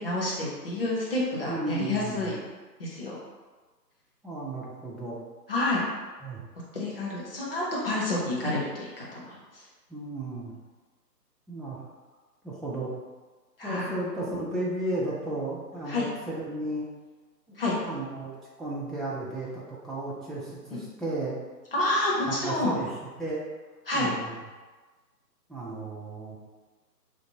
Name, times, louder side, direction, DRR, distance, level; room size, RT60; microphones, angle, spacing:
voice 1, 0.0-2.4 2.8-3.2 5.5-5.8 6.7-9.6 13.6-13.9 15.9-16.0 17.6-17.7 20.7-20.8 21.7-22.8 23.9-24.1, left 2 dB, 35° left, -6 dB, 0.8 m, -29 dB
voice 2, 1.5-2.3 4.2-5.2 6.2-6.4 9.9-10.6 11.5-11.8 12.4-12.9 13.6-16.9 17.5-21.4 22.3-22.9 23.2-23.4 23.9-24.3 25.5-26.4, right 2 dB, ahead, -5 dB, 0.3 m, -34 dB
3.4 x 2.5 x 2.9 m, 1.3 s
figure-of-eight pair, 145°, 50 cm